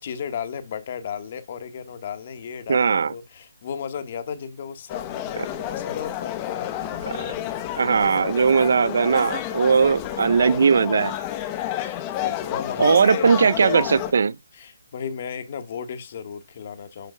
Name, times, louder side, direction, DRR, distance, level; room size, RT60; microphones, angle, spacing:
voice 1, 0.0-7.7 11.8-13.3 14.5-17.1, left 7 dB, 40° left, 1.3 m, -34 dB
voice 2, 2.7-3.1 7.8-11.2 12.8-14.4, right 5 dB, 60° right, 0.5 m, -19 dB
sound 1, 4.9-14.1, left 12 dB, 20° left, 0.8 m, -30 dB
9.1 x 5.2 x 2.2 m
hypercardioid pair, 160°, 0 cm